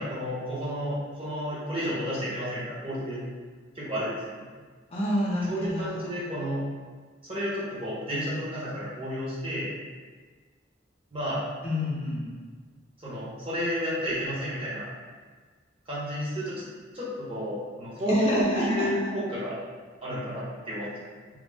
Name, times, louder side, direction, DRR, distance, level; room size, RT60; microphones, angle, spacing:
voice 1, 0.0-3.2 3.7-4.4 5.5-6.6 7.2-9.7 11.1-11.4 13.0-14.9 15.9-16.6 16.9-19.5 20.0-20.9, equal, 30° right, -9 dB, 0.9 m, -31 dB
voice 2, 4.9-6.1 11.6-12.3 18.0-18.9, left 1 dB, 30° left, -7 dB, 0.5 m, -28 dB
2.5 x 2.0 x 3.3 m, 1.5 s
head